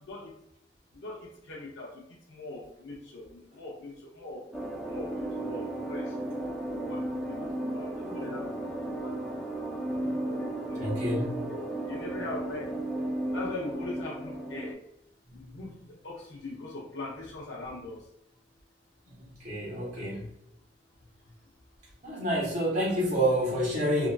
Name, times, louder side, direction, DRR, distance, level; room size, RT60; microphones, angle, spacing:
voice 1, 0.9-1.9 2.3-4.4 4.9-6.1 6.7-7.5 7.7-9.1 10.0-10.9 11.4-11.6 11.9-12.7 13.3-14.8 15.3-15.8 16.0-18.0, left 2 dB, 75° left, -3 dB, 0.6 m, -41 dB
sound 1, 4.5-14.7, right 1 dB, ahead, 0.4 m, -34 dB
voice 2, 10.8-11.4 19.4-20.3 22.0-24.1, equal, 45° right, -5 dB, 1.2 m, -28 dB
2.9 x 2.6 x 2.2 m, 0.74 s
head